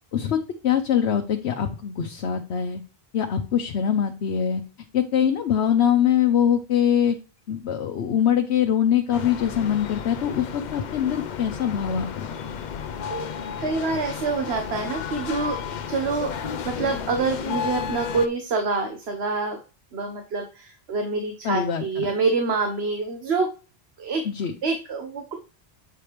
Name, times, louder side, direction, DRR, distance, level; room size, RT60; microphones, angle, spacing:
voice 1, 0.6-2.8 3.1-4.6 4.9-7.2 7.5-12.3 21.4-22.1 24.2-24.5, left 9 dB, 85° left, 5 dB, 1.0 m, -23 dB
sound 1, 9.1-18.3, left 7 dB, 55° left, 0.6 m, -33 dB
voice 2, 13.6-16.4 16.6-19.6 19.9-23.5 24.0-24.3 24.6-25.3, right 4 dB, 75° right, 4 dB, 1.2 m, -26 dB
7.9 x 5.0 x 3.0 m, 0.35 s
omnidirectional pair, 1.1 m